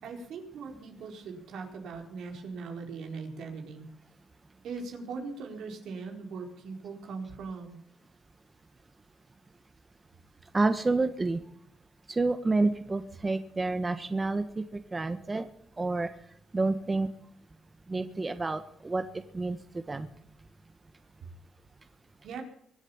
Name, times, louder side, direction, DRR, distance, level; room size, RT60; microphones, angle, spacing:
voice 1, 0.0-3.9 4.6-7.8 22.2-22.4, right 4 dB, 75° right, 3 dB, 4.3 m, -40 dB
voice 2, 10.4-11.4 12.1-15.5 15.8-16.1 16.5-17.1 17.9-20.1, right 3 dB, 25° right, 9 dB, 1.3 m, -29 dB
23.0 x 8.4 x 7.1 m, 0.69 s
cardioid pair, 90°, 0 cm